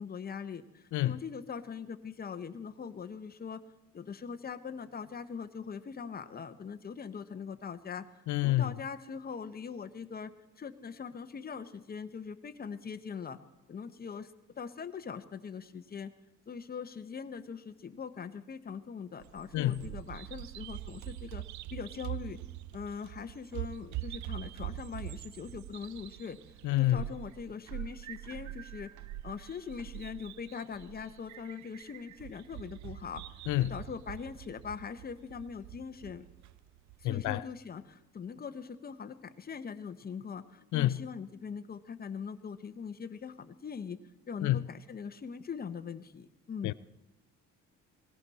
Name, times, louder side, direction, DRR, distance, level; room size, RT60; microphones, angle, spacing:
voice 1, 0.0-3.6 3.9-8.1 8.4-10.3 10.6-13.4 13.7-14.3 14.6-16.1 16.5-21.4 21.7-22.4 22.7-26.4 26.8-28.9 29.2-33.2 33.7-36.3 37.0-44.0 44.3-46.7, left 6 dB, 30° left, 0.9 m, -41 dB
voice 2, 8.3-8.7 19.5-19.8 26.6-27.0 33.5-33.8 37.0-37.4 40.7-41.0 44.4-44.6 46.6-46.7, left 15 dB, 75° left, 0.5 m, -28 dB
Bird vocalization bird call bird song, 19.2-37.3, right 15 dB, 70° right, 0.5 m, -44 dB
17.5 x 17.0 x 4.1 m
cardioid pair, 120°, 30 cm